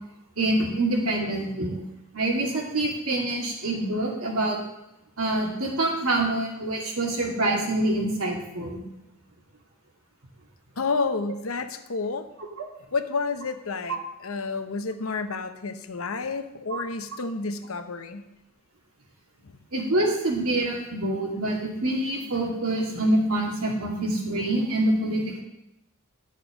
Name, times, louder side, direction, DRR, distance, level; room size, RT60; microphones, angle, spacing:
voice 1, 0.4-1.8 2.1-4.6 5.2-8.8 16.7-16.8 19.7-25.4, right 1 dB, 80° right, -1 dB, 2.5 m, -26 dB
voice 2, 10.8-12.3 12.9-18.2 19.4-19.6, left 4 dB, 75° left, 9 dB, 0.8 m, -30 dB
11.5 x 6.6 x 5.1 m, 0.90 s
head